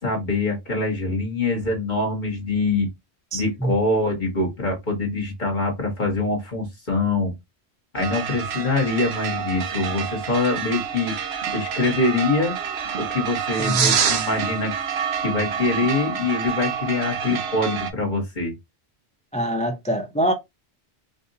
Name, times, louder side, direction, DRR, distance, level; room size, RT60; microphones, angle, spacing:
voice 1, 0.0-2.9 3.3-7.3 7.9-11.1 11.5-12.5 13.0-14.7 15.2-18.5, left 3 dB, 45° left, 1.6 m, -24 dB
voice 2, 3.3-3.7 13.6-13.9 19.3-20.3, right 1 dB, 10° left, 0.3 m, -24 dB
sound 1, 8.0-17.9, right 7 dB, 75° right, 1.0 m, -27 dB
5.1 x 2.6 x 2.6 m
omnidirectional pair, 1.1 m